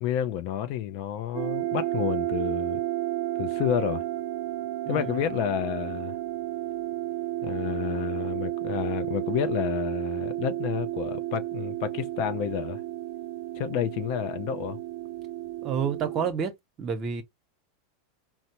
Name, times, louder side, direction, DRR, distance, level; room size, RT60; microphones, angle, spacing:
voice 1, 0.0-2.8 3.4-4.0 4.9-6.2 7.4-12.8 13.5-14.8, left 10 dB, 55° left, 0.4 m, -30 dB
sound 1, 1.3-16.3, right 15 dB, 55° right, 0.3 m, -32 dB
voice 2, 15.6-16.5 16.8-17.2, right 7 dB, 40° right, 0.8 m, -29 dB
4.1 x 2.0 x 2.8 m
hypercardioid pair, 105°, 0 cm